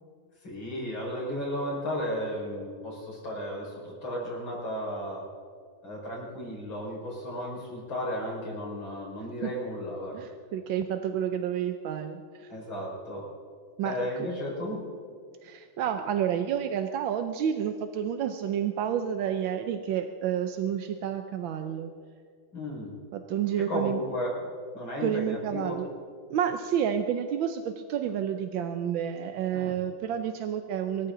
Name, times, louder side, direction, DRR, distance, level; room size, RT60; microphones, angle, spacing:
voice 1, 0.4-5.2 5.8-10.3 12.5-13.3 13.8-14.9 22.5-23.0 23.6-24.4 24.7-25.8 29.5-29.8, equal, 90° left, -3 dB, 5.8 m, -34 dB
voice 2, 10.1-12.5 13.8-14.1 15.4-21.9 23.1-24.0 25.0-25.9 26.3-31.1, right 9 dB, 85° right, 7 dB, 1.5 m, -30 dB
24.5 x 14.0 x 3.9 m, 2.1 s
omnidirectional pair, 2.1 m